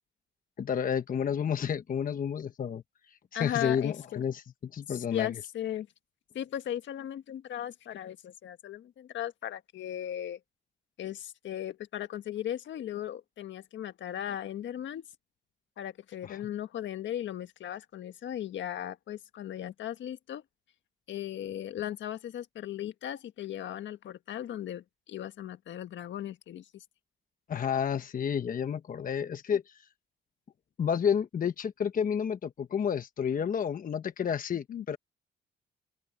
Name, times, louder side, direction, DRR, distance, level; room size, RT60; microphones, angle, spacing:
voice 1, 0.6-2.8 3.3-5.3 16.2-16.4 27.5-29.8 30.8-35.0, left 7 dB, 45° left, 1.0 m, -30 dB
voice 2, 3.3-4.2 4.9-5.9 6.3-10.4 11.0-15.0 15.8-20.4 21.1-26.8 34.7-34.8, left 11 dB, 70° left, 1.6 m, -37 dB
open air
cardioid pair, 90°, 20 cm